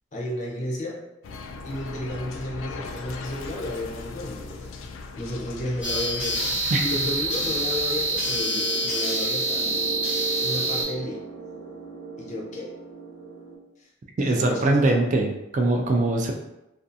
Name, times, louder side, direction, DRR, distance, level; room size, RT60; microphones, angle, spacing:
voice 1, 0.1-1.0 1.6-4.7 5.2-9.7 10.4-11.2 12.2-12.7 13.8-13.9 14.2-14.9, left 1 dB, 40° left, -2 dB, 0.5 m, -32 dB
sound 1, 1.2-8.4, left 3 dB, 90° left, 0.3 m, -39 dB
sound 2, 5.8-10.8, right 1 dB, 5° right, 0.7 m, -26 dB
sound 3, 8.1-13.6, right 5 dB, 65° right, 0.8 m, -37 dB
voice 2, 14.2-16.3, right 2 dB, 40° right, 2 dB, 0.3 m, -22 dB
2.5 x 2.3 x 2.6 m, 0.91 s
head